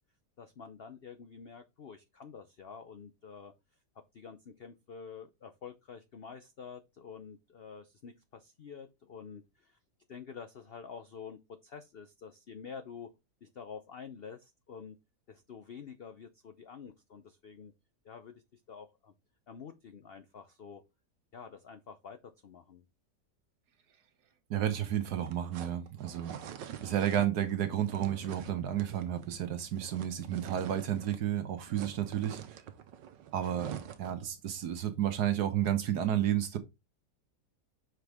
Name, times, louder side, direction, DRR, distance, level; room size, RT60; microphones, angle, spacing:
voice 1, 0.4-3.5 4.1-9.8 10.1-13.1 13.4-15.0 15.3-17.7 18.0-19.1 19.5-20.8 21.3-22.9, left 6 dB, 80° left, 0.5 m, -48 dB
voice 2, 24.5-26.4 26.8-32.4 33.3-36.6, right 10 dB, 65° right, 1.4 m, -31 dB
sound 1, 24.9-31.3 31.5-34.3, right 9 dB, 85° right, 1.5 m, -46 dB
6.2 x 4.8 x 3.5 m
omnidirectional pair, 1.9 m